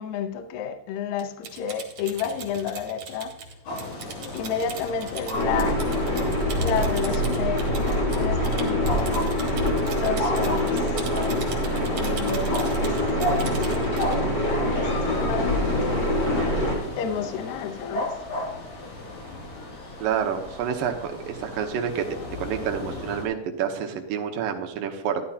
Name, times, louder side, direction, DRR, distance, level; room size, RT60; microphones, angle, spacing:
voice 1, 0.0-3.3 4.3-5.8 6.6-9.2 9.8-10.8 11.9-12.5 12.8-12.9 13.4-13.6 14.7-16.5 17.0-18.1, left 7 dB, 80° left, 1.6 m, -31 dB
Typing, 1.2-14.2, right 5 dB, 50° right, 2.5 m, -40 dB
sound 1, 3.7-23.3, left 1 dB, 60° left, 4.2 m, -35 dB
sound 2, 5.3-16.8, equal, 25° left, 3.8 m, -25 dB
voice 2, 20.0-22.1 22.4-25.2, right 8 dB, 70° right, 2.5 m, -28 dB
13.5 x 12.0 x 2.8 m
omnidirectional pair, 4.5 m